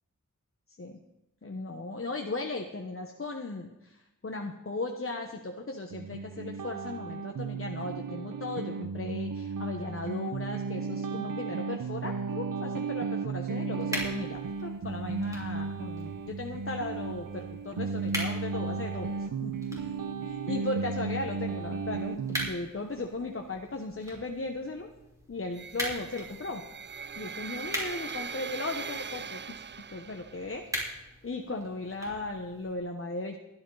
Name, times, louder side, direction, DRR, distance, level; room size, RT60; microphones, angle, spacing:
voice 1, 1.4-19.9 20.2-24.9 25.3-26.6 27.2-29.6 29.9-30.6 31.2-33.4, left 2 dB, 40° left, 2 dB, 1.2 m, -37 dB
sound 1, 5.9-22.5, right 4 dB, 80° right, 0.9 m, -34 dB
sound 2, 13.8-32.7, equal, 10° right, 5.2 m, -42 dB
sound 3, 25.5-30.6, right 6 dB, 35° right, 0.4 m, -41 dB
16.0 x 12.0 x 4.1 m, 0.96 s
wide cardioid pair, 80°, 32 cm